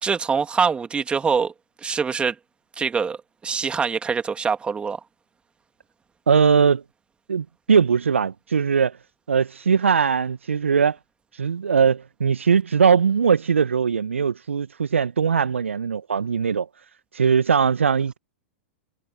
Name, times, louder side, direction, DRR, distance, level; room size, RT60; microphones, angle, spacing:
voice 1, 0.0-1.5 1.8-2.3 2.8-3.2 3.4-5.0, right 5 dB, 15° right, 2.6 m, -24 dB
voice 2, 6.3-6.8 7.3-8.9 9.3-11.0 11.4-16.7 17.1-18.2, right 6 dB, 75° right, 1.2 m, -20 dB
figure-of-eight pair, 100°, 7 cm